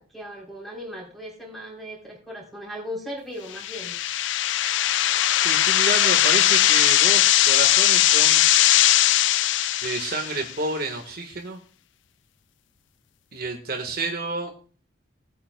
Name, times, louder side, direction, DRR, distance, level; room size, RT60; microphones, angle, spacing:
voice 1, 0.0-3.9, equal, ahead, -1 dB, 3.7 m, -37 dB
sound 1, 3.5-10.5, left 13 dB, 70° left, 0.4 m, -19 dB
voice 2, 5.4-8.4 9.8-11.6 13.3-14.5, right 3 dB, 50° right, 2 dB, 1.5 m, -29 dB
20.0 x 9.0 x 2.2 m, 0.39 s
head